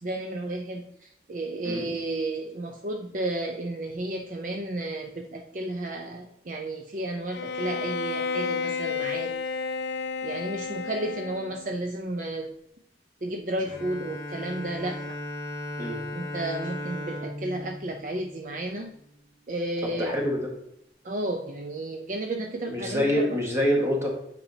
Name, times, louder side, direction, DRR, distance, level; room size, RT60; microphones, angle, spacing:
voice 1, 0.0-9.3 10.2-12.5 13.2-15.2 16.1-18.9 19.5-20.1 21.0-23.4, right 1 dB, 45° right, 3 dB, 0.5 m, -32 dB
Bowed string instrument, 7.3-11.7, left 5 dB, 75° left, 0.4 m, -31 dB
Bowed string instrument 2, 13.6-19.1, left 1 dB, 20° left, 1.9 m, -37 dB
voice 2, 19.8-20.5 22.7-24.1, equal, 15° right, -1 dB, 1.5 m, -26 dB
8.6 x 5.3 x 2.8 m, 0.79 s
head